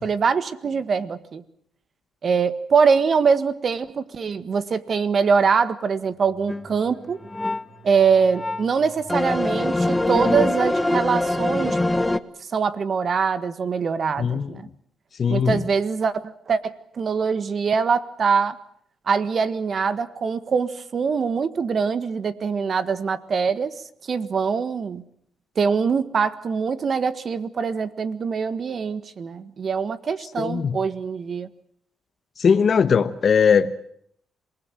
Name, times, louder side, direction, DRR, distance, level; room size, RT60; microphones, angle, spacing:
voice 1, 0.0-1.4 2.2-7.2 7.8-11.8 12.5-14.7 15.3-18.6 19.1-23.7 24.1-25.0 25.6-31.5, right 5 dB, 45° right, 13 dB, 1.6 m, -23 dB
sound 1, 6.1-10.9, right 5 dB, 70° right, 5.3 m, -50 dB
sound 2, 6.5-6.7 7.1-7.6 8.3-8.6 9.1-12.2, left 2 dB, 10° left, 1.2 m, -23 dB
voice 2, 14.2-14.5 15.2-15.6 30.4-30.8 32.4-33.9, left 6 dB, 45° left, 10 dB, 1.1 m, -20 dB
27.0 x 19.5 x 7.6 m, 0.67 s
cardioid pair, 90°, 0 cm